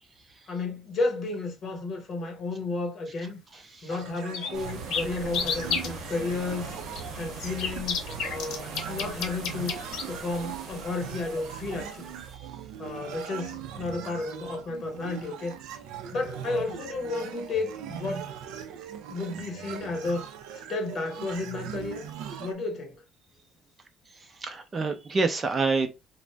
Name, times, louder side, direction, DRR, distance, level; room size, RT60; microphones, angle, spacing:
voice 1, 0.5-3.4 3.8-6.7 7.2-9.7 10.1-12.0 12.8-15.5 16.1-18.3 19.1-20.3 20.7-22.1 22.4-23.0, left 3 dB, 45° left, 0.9 m, -32 dB
sound 1, 3.9-4.0 4.3-5.9 6.9-10.0, left 6 dB, 75° left, 0.7 m, -30 dB
sound 2, 3.9-22.5, right 8 dB, 85° right, 0.4 m, -40 dB
sound 3, 4.5-12.4, right 3 dB, 60° right, 0.8 m, -42 dB
voice 2, 24.4-25.9, right 3 dB, 25° right, 0.4 m, -27 dB
2.5 x 2.0 x 3.2 m
cardioid pair, 130°, 0 cm